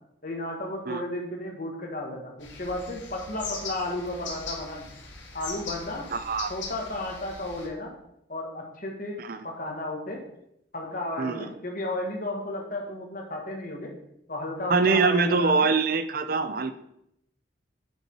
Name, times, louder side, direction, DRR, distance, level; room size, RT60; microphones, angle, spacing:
voice 1, 0.2-4.9 5.3-6.1 6.5-7.9 8.3-10.2 10.7-13.9 14.3-15.7, left 1 dB, 45° left, 1 dB, 1.6 m, -33 dB
sound 1, 2.4-7.7, left 4 dB, 85° left, 1.9 m, -40 dB
voice 2, 6.1-6.5 9.2-9.4 11.2-11.5 14.7-16.7, right 4 dB, 50° right, 11 dB, 0.5 m, -24 dB
7.8 x 5.4 x 4.6 m, 0.77 s
head